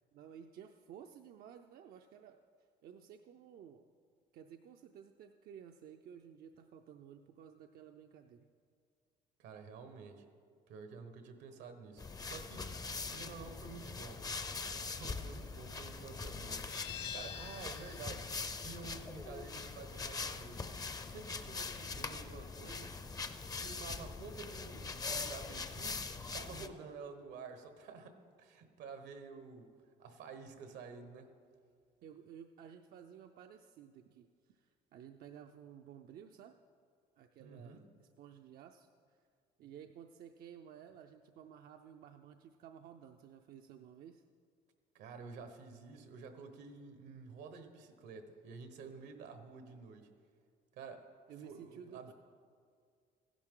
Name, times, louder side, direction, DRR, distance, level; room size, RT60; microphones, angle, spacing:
voice 1, 0.1-2.4 2.8-3.9 4.3-8.5 15.2-15.6 26.6-26.9 32.0-36.6 37.2-39.2 39.6-44.2 51.3-52.1, right 8 dB, 65° right, 5 dB, 0.5 m, -54 dB
voice 2, 9.4-10.2 10.7-12.8 13.1-14.2 14.8-16.6 17.1-20.7 21.0-22.9 23.6-29.7 30.0-31.3 37.4-37.8 44.9-50.1 50.8-51.1 51.4-52.1, right 5 dB, 85° right, 7 dB, 1.2 m, -50 dB
sound 1, 12.0-26.7, left 4 dB, 20° left, 0.5 m, -42 dB
sound 2, 16.7-22.1, left 9 dB, 80° left, 1.0 m, -50 dB
15.0 x 11.0 x 3.8 m, 2.2 s
cardioid pair, 110°, 17 cm